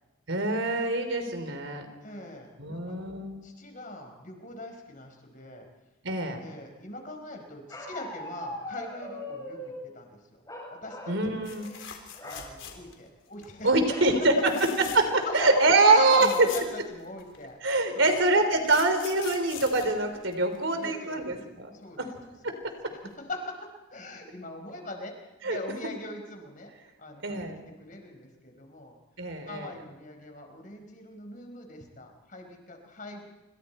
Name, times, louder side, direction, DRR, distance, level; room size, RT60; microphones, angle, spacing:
voice 1, 0.3-1.9 2.6-3.4 6.0-6.4 11.1-11.7 13.6-14.5 14.9-16.3 17.6-21.7 22.0-22.1 22.4-22.6 25.4-25.6 27.2-27.6 29.2-29.7, right 2 dB, 70° right, 7 dB, 3.6 m, -24 dB
voice 2, 2.0-3.0 3.4-5.7 6.4-10.4 10.7-11.5 12.2-13.7 14.9-17.6 17.9-18.2 20.8-21.4 21.7-22.1 22.5-22.6 22.9-25.1 25.4-26.7 27.0-27.4 27.8-29.0 29.4-33.3, left 2 dB, 40° left, 4 dB, 4.7 m, -41 dB
Bark, 7.7-9.8 10.5-11.2 11.5-11.8 12.1-12.5 13.9-14.2 14.7-14.8 15.1-15.6, left 1 dB, 15° left, 8.0 m, -40 dB
sound 1, 11.4-13.1 13.4-13.7 14.4-15.2 15.6-15.7 15.9-17.4 18.2-20.7 22.6-22.8 23.1-23.2, left 8 dB, 70° left, 3.8 m, -43 dB
27.0 x 25.5 x 4.5 m, 1.1 s
head